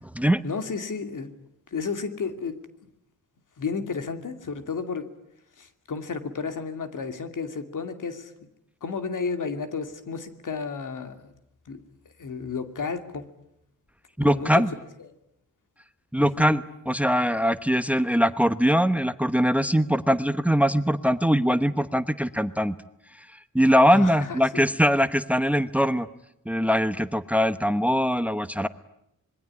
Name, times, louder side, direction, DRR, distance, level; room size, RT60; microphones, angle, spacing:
voice 1, 0.4-1.3 1.7-2.6 3.6-5.1 5.6-8.5 8.8-11.3 11.7-11.8 12.2-13.3 14.2-14.6 16.2-16.6 23.9-24.7, left 5 dB, 75° left, 8 dB, 2.6 m, -32 dB
voice 2, 14.2-14.7 16.1-22.7 23.5-26.1 26.5-28.7, equal, 5° right, 13 dB, 1.0 m, -22 dB
26.5 x 22.0 x 9.9 m, 0.80 s
wide cardioid pair, 100°, 32 cm